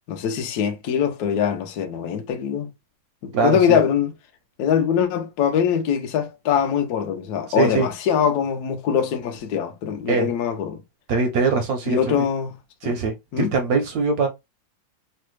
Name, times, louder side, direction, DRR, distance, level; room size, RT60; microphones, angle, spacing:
voice 1, 0.1-2.7 3.2-4.1 4.6-10.8 11.9-12.5 12.8-12.9 13.3-13.5, left 8 dB, 70° left, 1.0 m, -22 dB
voice 2, 3.3-3.8 7.5-7.9 10.1-10.3 11.1-12.0 12.8-14.3, right 4 dB, 70° right, 0.8 m, -22 dB
3.2 x 2.2 x 3.0 m
omnidirectional pair, 2.0 m